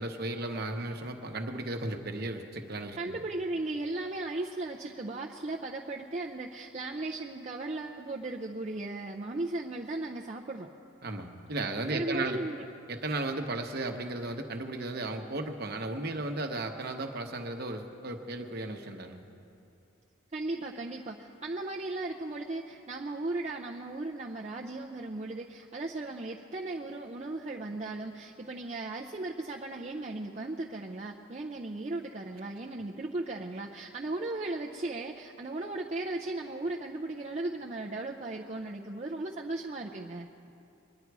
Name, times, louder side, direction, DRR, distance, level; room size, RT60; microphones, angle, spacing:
voice 1, 0.0-3.2 11.0-12.4 12.9-19.2, right 2 dB, 50° right, 5 dB, 1.0 m, -35 dB
voice 2, 3.0-10.7 11.9-12.6 20.3-40.3, right 2 dB, 30° right, -1 dB, 0.5 m, -36 dB
22.5 x 10.5 x 4.7 m, 2.7 s
head